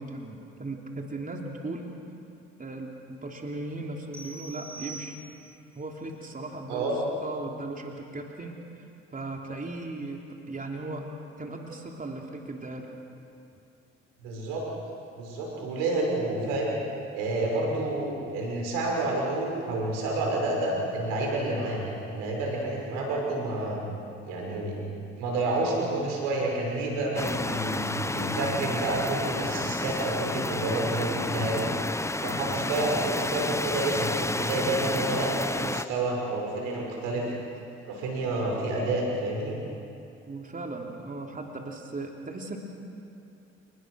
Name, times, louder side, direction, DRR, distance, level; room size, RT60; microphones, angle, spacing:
voice 1, 0.0-1.9 2.6-5.2 5.7-6.9 7.2-8.6 9.1-11.1 11.4-12.9 40.3-42.6, right 2 dB, 30° right, 0 dB, 3.3 m, -37 dB
sound 1, 4.1-5.7, right 3 dB, 10° right, 4.9 m, -43 dB
voice 2, 6.7-7.0 14.2-14.6 15.1-16.7 17.1-23.8 24.2-24.8 25.2-31.7 32.2-37.3 37.8-39.5, right 2 dB, 85° right, -1 dB, 6.1 m, -29 dB
sound 2, 27.2-35.9, left 2 dB, 10° left, 0.9 m, -30 dB
28.5 x 21.0 x 6.5 m, 2.7 s
hypercardioid pair, 60°, 30 cm